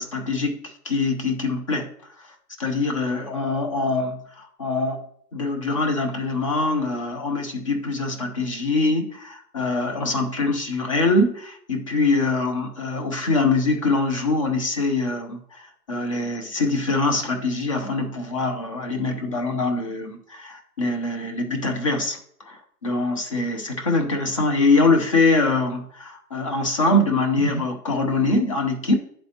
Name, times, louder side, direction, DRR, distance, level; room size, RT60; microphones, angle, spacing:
voice 1, 0.0-1.9 2.6-5.1 5.3-22.2 22.5-29.0, left 3 dB, 25° left, 5 dB, 0.4 m, -23 dB
10.5 x 4.2 x 2.8 m, 0.65 s
hypercardioid pair, 135°, 46 cm